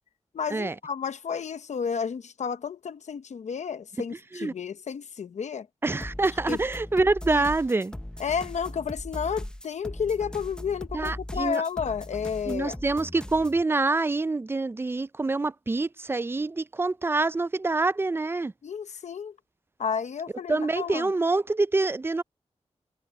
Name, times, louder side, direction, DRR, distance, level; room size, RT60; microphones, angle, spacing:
voice 1, 0.3-5.7 6.5-6.6 7.3-7.4 8.2-12.8 18.6-19.3 19.8-21.1, left 6 dB, 85° left, 0.8 m, -31 dB
voice 2, 5.8-7.9 10.9-11.6 12.5-18.5 20.5-22.2, right 3 dB, 20° right, 0.3 m, -26 dB
sound 1, 6.0-13.6, left 1 dB, 5° left, 0.7 m, -39 dB
wide cardioid pair, 135°, 12 cm